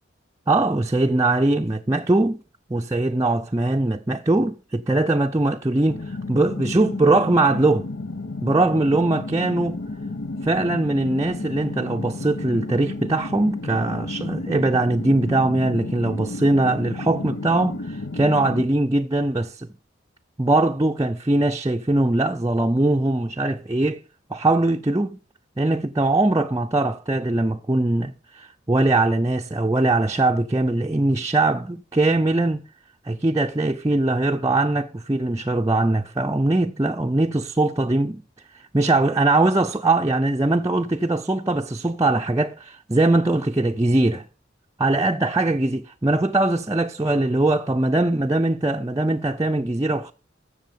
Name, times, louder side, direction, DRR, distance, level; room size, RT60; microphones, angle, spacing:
voice 1, 0.5-2.4 2.7-7.9 8.4-9.8 10.4-19.7 20.4-24.0 24.3-25.2 25.6-32.6 33.0-38.2 38.7-44.3 44.8-50.1, right 2 dB, 15° right, 0.5 m, -21 dB
sound 1, 5.9-18.7, left 2 dB, 85° left, 1.0 m, -32 dB
15.0 x 6.4 x 5.2 m
head